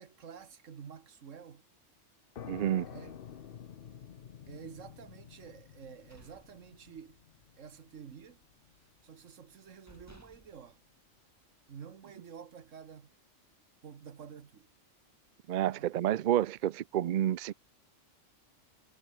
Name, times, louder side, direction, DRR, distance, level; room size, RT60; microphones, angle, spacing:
voice 1, 0.0-1.7 2.9-3.2 4.5-7.2 7.6-8.4 9.0-10.8 11.7-13.1 13.8-14.7 15.7-15.9, right 7 dB, 90° right, 1.7 m, -50 dB
sound 1, 2.3-9.7, left 8 dB, 55° left, 0.9 m, -50 dB
voice 2, 2.5-2.9 15.5-17.5, right 12 dB, 60° right, 0.5 m, -29 dB
sound 2, 6.0-7.3 7.7-7.9 8.3-9.0 9.5-9.6 9.9-11.7, right 1 dB, 10° right, 4.3 m, -60 dB
omnidirectional pair, 1.3 m